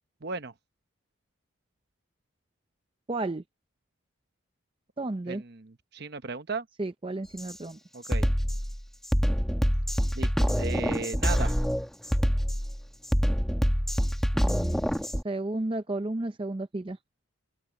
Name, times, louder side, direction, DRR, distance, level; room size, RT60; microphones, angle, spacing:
voice 1, 0.2-0.5 5.3-6.7 7.9-8.3 10.1-11.5, right 4 dB, 50° right, 0.9 m, -35 dB
voice 2, 3.1-3.4 5.0-5.4 6.8-7.8 14.3-14.9 15.2-17.0, right 2 dB, 25° right, 0.5 m, -32 dB
Drum kit, 7.4-7.5 8.0-15.2, equal, ahead, 1.1 m, -26 dB
open air
head